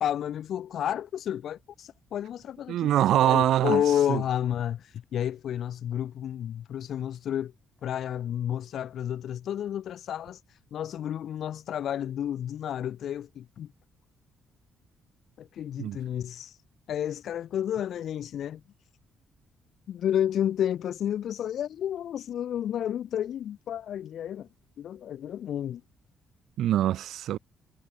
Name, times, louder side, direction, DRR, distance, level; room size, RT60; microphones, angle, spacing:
voice 1, 0.0-2.9 3.2-7.5 7.8-13.7 15.4-16.6 16.9-18.6 19.9-24.5 24.8-25.8, left 10 dB, 70° left, 1.4 m, -31 dB
voice 2, 2.7-3.8 4.1-4.2 15.8-16.0 26.6-27.4, right 12 dB, 80° right, 1.0 m, -23 dB
cardioid pair, 90°, 0 cm